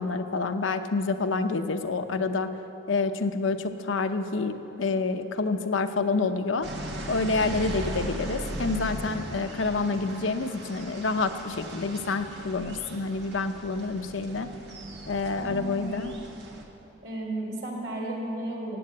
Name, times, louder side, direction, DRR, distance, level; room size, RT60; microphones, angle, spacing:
voice 1, 0.0-2.5 2.9-6.7 7.1-14.5 15.1-16.2, left 3 dB, 90° left, 8 dB, 0.8 m, -28 dB
sound 1, 6.6-16.6, right 1 dB, 65° right, 1.7 m, -38 dB
voice 2, 15.4-16.2 17.0-18.8, right 1 dB, 85° right, -2 dB, 3.6 m, -34 dB
15.5 x 8.6 x 8.7 m, 3.0 s
head